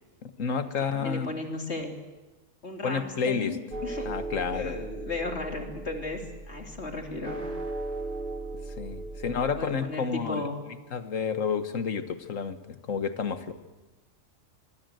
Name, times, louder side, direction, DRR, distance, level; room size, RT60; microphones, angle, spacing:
voice 1, 0.2-1.3 2.8-3.6 4.1-4.7 8.8-10.5 10.9-13.5, left 6 dB, 80° left, 10 dB, 1.7 m, -30 dB
voice 2, 0.9-1.9 2.6-4.1 4.5-7.4 9.4-10.6, left 2 dB, 55° left, 3 dB, 3.2 m, -35 dB
sound 1, 3.7-9.6, right 2 dB, 40° right, 3.4 m, -37 dB
25.5 x 21.5 x 7.8 m, 1.1 s
omnidirectional pair, 1.3 m